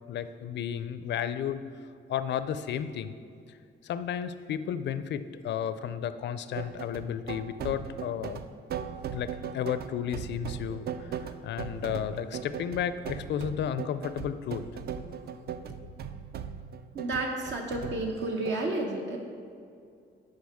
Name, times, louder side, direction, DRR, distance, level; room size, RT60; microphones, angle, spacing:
voice 1, 0.1-1.6 2.1-3.1 3.8-8.4 9.1-15.3 15.8-15.9, left 9 dB, 65° left, 12 dB, 0.4 m, -33 dB
sound 1, 6.6-18.6, right 8 dB, 55° right, 0.4 m, -38 dB
voice 2, 16.9-19.2, right 2 dB, 70° right, 1 dB, 0.9 m, -31 dB
10.5 x 4.8 x 3.6 m, 2.3 s
cardioid pair, 90°, 20 cm